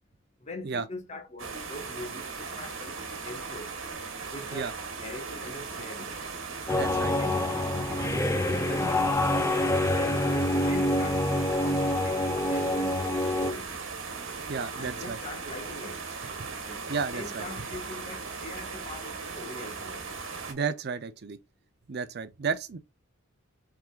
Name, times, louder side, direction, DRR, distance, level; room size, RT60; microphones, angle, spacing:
voice 1, 0.4-3.7 4.3-4.7 5.0-6.2 6.7-8.3 8.7-9.1 9.8-13.8 14.7-16.1 16.6-20.1, left 2 dB, 35° left, 1.4 m, -42 dB
sound 1, 1.4-20.5, right 4 dB, 75° right, 1.3 m, -38 dB
sound 2, 6.7-13.5, left 1 dB, 15° left, 0.4 m, -26 dB
voice 2, 6.7-7.1 14.5-15.2 16.9-17.4 20.5-21.4 21.9-22.8, right 5 dB, 55° right, 0.6 m, -32 dB
5.9 x 3.7 x 2.4 m
head